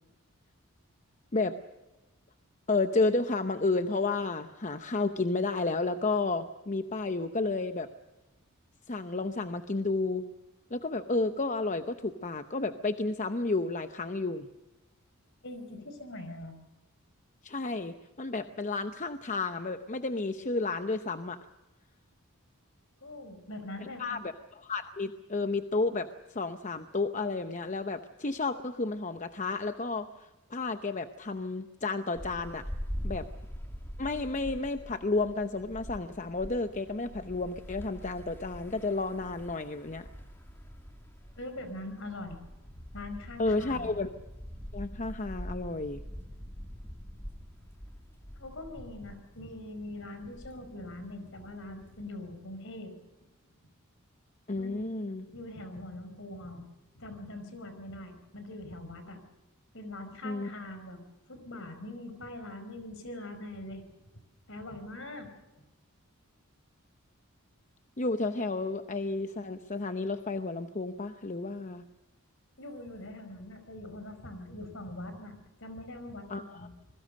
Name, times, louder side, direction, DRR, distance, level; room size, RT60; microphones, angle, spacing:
voice 1, 2.7-7.9 8.9-10.2 10.7-14.5 17.4-21.4 24.0-24.3 24.6-30.1 30.5-32.6 33.0-33.3 34.0-40.1 43.4-44.1 44.7-46.0 54.5-55.3 60.2-60.5 68.0-71.8 76.3-76.7, left 3 dB, 35° left, 9 dB, 0.8 m, -31 dB
voice 2, 15.4-16.6 23.0-24.2 41.4-42.4 42.7-44.0 48.4-52.9 53.2-53.3 53.6-53.7 54.5-55.0 55.3-56.6 56.9-59.2 59.7-61.0 61.3-64.1 64.5-65.3 65.6-65.7 72.6-76.7, left 1 dB, 60° left, 9 dB, 4.9 m, -43 dB
sound 1, 32.1-52.1, equal, 10° left, 2.7 m, -44 dB
26.5 x 21.5 x 6.5 m, 1.0 s
head